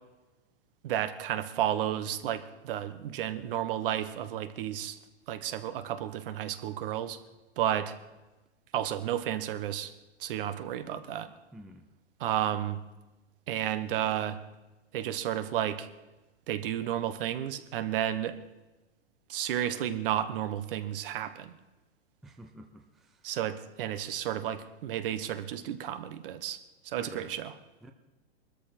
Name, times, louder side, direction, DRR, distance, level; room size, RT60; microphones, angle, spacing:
voice 1, 0.8-5.0 5.3-7.2 7.6-7.9 8.7-9.9 10.2-11.3 12.2-12.8 13.5-14.4 14.9-15.9 16.5-18.3 19.3-21.5 23.2-26.6 26.8-27.5, right 11 dB, 55° right, 11 dB, 1.3 m, -32 dB
voice 2, 11.5-11.9 22.2-23.2 27.0-27.4 27.8-27.9, right 1 dB, ahead, 5 dB, 0.4 m, -49 dB
21.5 x 13.0 x 4.4 m, 1.1 s
hypercardioid pair, 145°, 33 cm